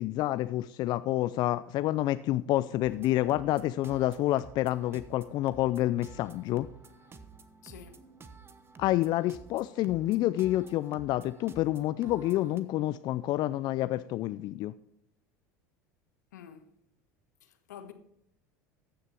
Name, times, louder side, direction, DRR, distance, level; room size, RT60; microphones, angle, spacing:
voice 1, 0.0-6.7 8.8-14.7, left 15 dB, 50° left, 0.4 m, -28 dB
sound 1, 2.8-12.6, right 4 dB, 25° right, 1.1 m, -52 dB
voice 2, 7.6-8.0 16.3-16.7 17.4-17.9, left 9 dB, 85° left, 1.2 m, -48 dB
14.0 x 6.6 x 4.4 m
hypercardioid pair, 85°, 9 cm